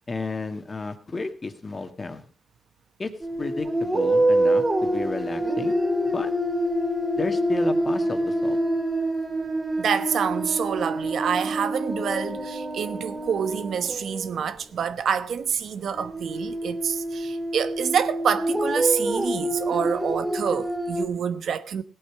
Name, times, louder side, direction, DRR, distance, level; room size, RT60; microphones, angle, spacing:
voice 1, 0.1-2.2 3.0-3.1 3.4-5.7 6.1-6.3 7.2-8.6, left 3 dB, 30° left, 1.8 m, -32 dB
sound 1, 3.2-14.5 15.7-21.0, right 1 dB, 25° right, 2.7 m, -26 dB
voice 2, 9.8-21.8, right 7 dB, 70° right, 1.0 m, -27 dB
17.5 x 8.7 x 4.7 m
cardioid pair, 105°, 0 cm